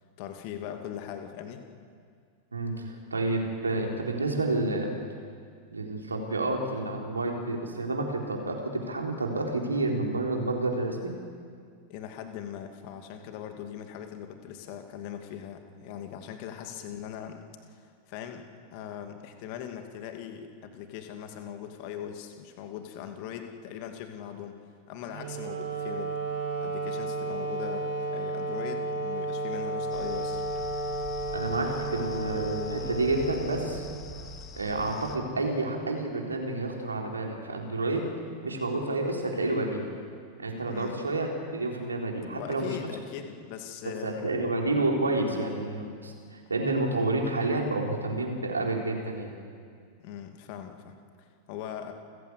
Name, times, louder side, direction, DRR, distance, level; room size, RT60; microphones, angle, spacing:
voice 1, 0.2-1.6 11.9-24.6 24.9-26.2 26.6-30.4 40.7-41.0 42.3-44.3 50.0-51.9, left 9 dB, 45° left, 6 dB, 2.5 m, -40 dB
voice 2, 2.5-5.0 5.7-11.1 31.3-33.8 34.5-38.1 38.4-39.9 40.4-42.8 44.0-49.3, right 2 dB, 75° right, 1 dB, 4.0 m, -29 dB
Wind instrument woodwind instrument, 25.1-34.4, right 2 dB, 55° right, 4.6 m, -33 dB
sound 1, 29.9-35.2, left 4 dB, 30° left, 2.2 m, -44 dB
29.5 x 15.5 x 8.3 m, 2.1 s
figure-of-eight pair, 90°, 0 cm